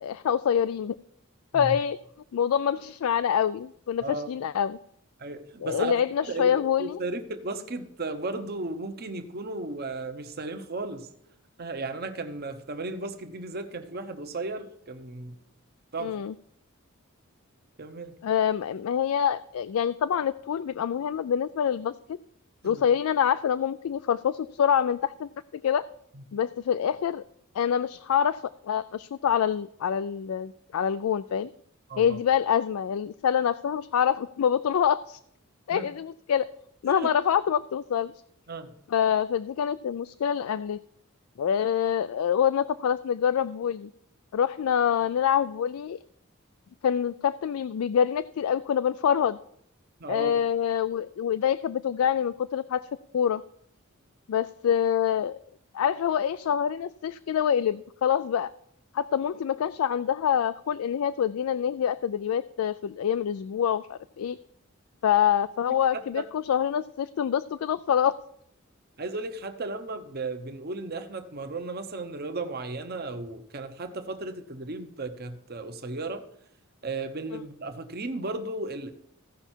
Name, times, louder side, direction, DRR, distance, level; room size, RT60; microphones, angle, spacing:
voice 1, 0.0-1.0 1.5-2.0 2.3-4.8 5.6-7.0 16.0-16.3 18.2-21.9 22.6-25.8 26.3-27.2 27.5-31.5 32.0-35.2 35.7-36.5 36.8-38.1 38.9-40.8 41.4-43.9 44.3-46.0 46.8-49.4 50.1-52.8 53.1-53.4 54.3-55.4 55.7-58.5 58.9-64.4 65.0-68.1 77.3-77.4, left 8 dB, 85° left, 14 dB, 0.3 m, -26 dB
voice 2, 4.0-4.3 5.2-5.9 6.3-11.1 11.6-15.4 15.9-16.1 17.8-18.1 22.6-22.8 26.1-26.2 31.9-32.2 35.7-35.9 36.9-37.1 38.5-38.7 50.0-50.3 66.1-66.2 69.0-76.2 76.8-78.9, right 2 dB, 50° right, 7 dB, 0.9 m, -35 dB
16.0 x 5.5 x 4.5 m, 0.68 s
head